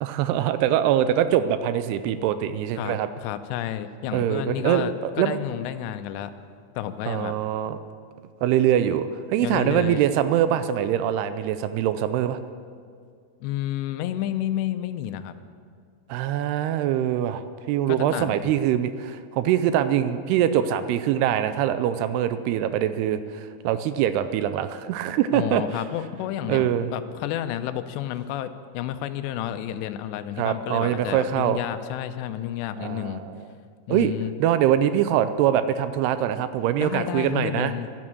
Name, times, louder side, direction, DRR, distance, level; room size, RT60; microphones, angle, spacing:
voice 1, 0.0-3.1 4.1-5.3 7.1-7.8 8.4-12.4 16.1-17.4 17.7-25.6 26.5-26.9 30.4-31.6 32.8-33.4 33.9-34.1 34.4-37.7, right 10 dB, 80° right, 11 dB, 2.5 m, -23 dB
voice 2, 2.8-6.3 6.8-7.4 9.4-10.0 13.4-15.3 17.9-18.5 25.3-33.2 33.9-34.3 36.8-37.9, left 12 dB, 90° left, 11 dB, 2.8 m, -30 dB
12.0 x 11.0 x 8.7 m, 2.2 s
omnidirectional pair, 4.9 m